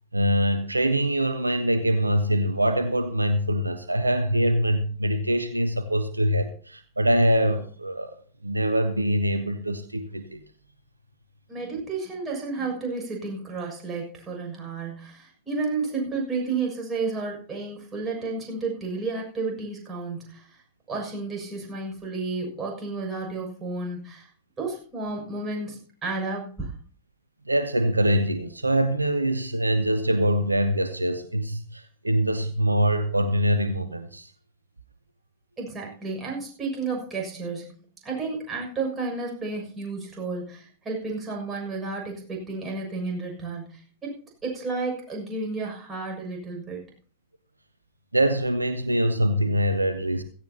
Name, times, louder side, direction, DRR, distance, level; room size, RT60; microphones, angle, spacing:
voice 1, 0.1-8.2 8.4-10.4 27.5-34.3 48.1-50.2, equal, 85° right, 0.9 m, -24 dB
voice 2, 11.5-20.6 20.9-24.3 24.6-26.7 35.6-37.7 38.0-46.8, right 3 dB, 20° right, 6.7 m, -32 dB
16.5 x 15.0 x 2.9 m
figure-of-eight pair, 90°, 0 cm